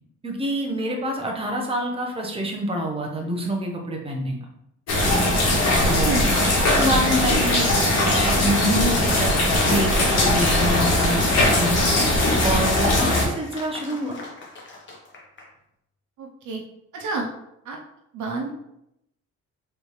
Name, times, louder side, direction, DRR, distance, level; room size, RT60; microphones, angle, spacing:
voice 1, 0.2-4.4 5.8-6.2 6.7-7.7 8.0-9.3 9.6-11.3 11.5-11.9 12.4-14.2, equal, 20° right, 0 dB, 1.0 m, -26 dB
sound 1, 4.9-13.2, left 1 dB, 60° left, 1.6 m, -20 dB
voice 2, 5.9-6.3 6.8-6.9 16.2-16.6 16.9-17.3 17.7-17.8 18.1-18.5, right 3 dB, 75° right, 1 dB, 0.7 m, -29 dB
sound 2, 9.1-15.5, left 2 dB, 40° left, 1.1 m, -37 dB
4.0 x 3.4 x 3.2 m, 0.81 s
cardioid pair, 90°, 30 cm